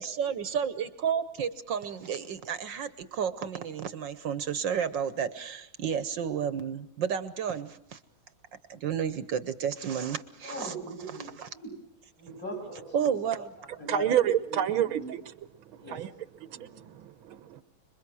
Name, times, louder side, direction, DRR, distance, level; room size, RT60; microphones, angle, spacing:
voice 1, 0.0-8.0 8.7-10.7 11.4-11.5 12.9-13.8, right 7 dB, 65° right, 1.7 m, -32 dB
voice 2, 10.4-11.8 12.2-13.2 13.6-14.1 14.5-15.1 15.8-16.1 16.5-16.7, equal, 40° left, 8.2 m, -40 dB
voice 3, 13.9-15.2 15.7-16.1 16.4-17.6, right 11 dB, 85° right, 1.9 m, -29 dB
26.5 x 22.5 x 6.2 m
omnidirectional pair, 2.2 m